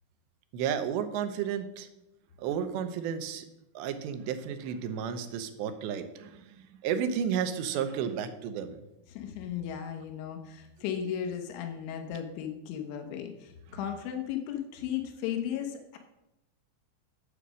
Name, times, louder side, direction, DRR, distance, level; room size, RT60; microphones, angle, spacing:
voice 1, 0.5-1.9 2.4-3.5 3.7-8.8 13.7-13.8, right 8 dB, 80° right, 9 dB, 2.9 m, -32 dB
voice 2, 9.1-16.0, left 9 dB, 90° left, 4 dB, 3.4 m, -35 dB
8.4 x 8.1 x 6.2 m, 0.89 s
omnidirectional pair, 5.2 m